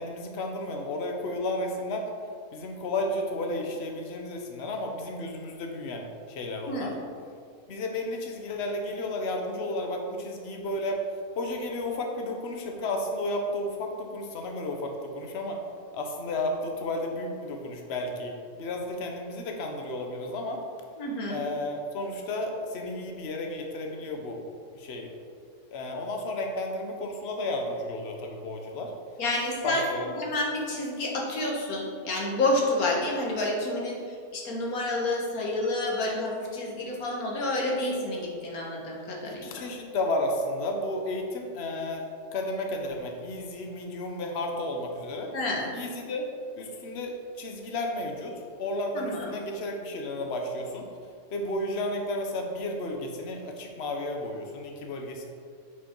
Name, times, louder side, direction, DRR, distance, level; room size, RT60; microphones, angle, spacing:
voice 1, 0.0-2.1 2.5-6.9 7.7-11.1 11.4-15.6 15.9-20.6 21.3-24.4 24.7-25.1 25.7-28.9 29.6-30.1 39.3-42.0 42.3-45.3 45.7-46.3 46.6-50.9 51.3-55.3, left 1 dB, 50° left, 2 dB, 1.1 m, -32 dB
voice 2, 6.7-7.0 21.0-21.4 29.2-29.9 30.2-39.5 45.3-45.7 48.9-49.4, left 2 dB, 75° left, -1 dB, 1.8 m, -29 dB
8.4 x 5.0 x 4.5 m, 2.3 s
omnidirectional pair, 1.6 m